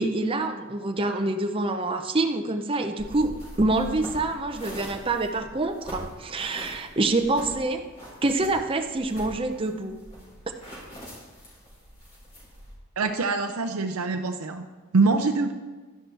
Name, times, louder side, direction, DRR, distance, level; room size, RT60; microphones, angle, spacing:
voice 1, 0.0-7.8 8.2-10.0, right 2 dB, 25° right, 5 dB, 0.6 m, -26 dB
sound 1, 3.0-12.7, equal, 30° left, 3.6 m, -43 dB
voice 2, 13.0-14.7 14.9-15.5, right 3 dB, 90° right, 5 dB, 0.6 m, -24 dB
12.0 x 10.5 x 3.3 m, 1.3 s
head